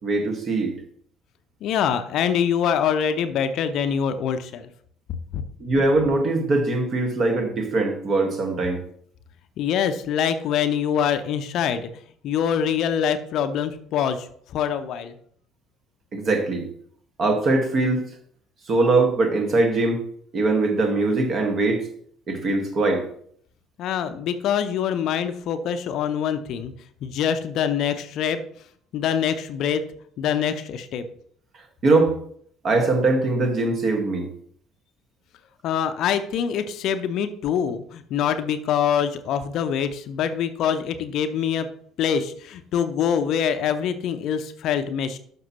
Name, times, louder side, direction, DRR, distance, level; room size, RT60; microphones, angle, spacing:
voice 1, 0.0-0.7 5.6-8.8 16.1-16.6 17.2-18.0 18.7-20.0 20.3-21.8 22.3-23.0 31.8-32.1 32.6-34.2, right 2 dB, 40° right, 4 dB, 1.7 m, -21 dB
voice 2, 1.6-4.7 5.3-5.4 9.6-11.9 12.2-15.1 23.8-26.7 27.0-28.4 28.9-29.8 30.2-31.1 35.6-41.7 42.0-45.2, left 8 dB, 50° left, 10 dB, 0.6 m, -24 dB
12.0 x 6.0 x 3.0 m, 0.62 s
figure-of-eight pair, 55°, 0 cm